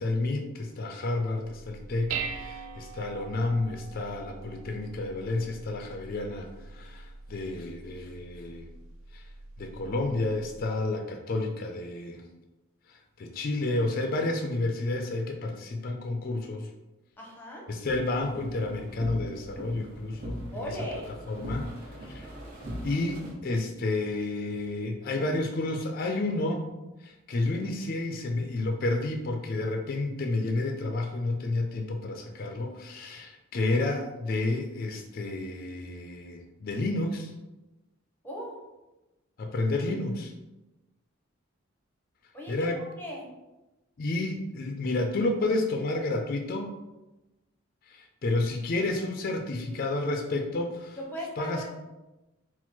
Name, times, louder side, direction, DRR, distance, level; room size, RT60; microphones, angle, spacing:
voice 1, 0.0-8.7 9.1-9.3 9.6-12.2 12.9-16.7 17.7-20.7 21.3-22.3 22.8-37.3 39.4-40.3 42.5-42.8 44.0-46.7 47.9-51.0 51.4-51.6, left 2 dB, 45° left, 4 dB, 0.4 m, -30 dB
Dishes pots and pans, 1.4-10.7, right 5 dB, 75° right, 0.4 m, -42 dB
voice 2, 17.2-17.7 20.5-21.1 38.2-38.5 42.3-42.7 43.0-43.3 51.1-51.8, equal, 10° left, -2 dB, 0.8 m, -37 dB
sound 1, 17.9-23.3, equal, 45° right, 1.2 m, -40 dB
4.3 x 2.0 x 4.3 m, 1.0 s
head